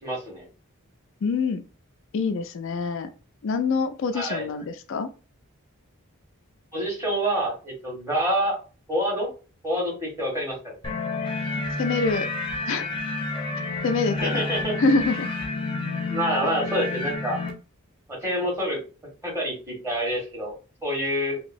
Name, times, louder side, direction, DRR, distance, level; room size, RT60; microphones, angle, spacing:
voice 1, 0.0-0.4 4.1-4.6 6.7-8.6 8.9-9.3 9.6-10.7 14.1-14.8 16.1-17.4 18.1-18.8 19.2-20.5 20.8-21.4, equal, 15° right, -3 dB, 1.5 m, -27 dB
voice 2, 1.2-1.6 2.1-3.1 3.4-5.1 11.8-12.3 12.7-12.9 13.5-14.4 14.8-15.3, left 4 dB, 60° left, 8 dB, 0.3 m, -25 dB
sound 1, 10.8-17.5, left 3 dB, 25° left, 0.6 m, -30 dB
3.0 x 2.8 x 2.5 m, 0.34 s
head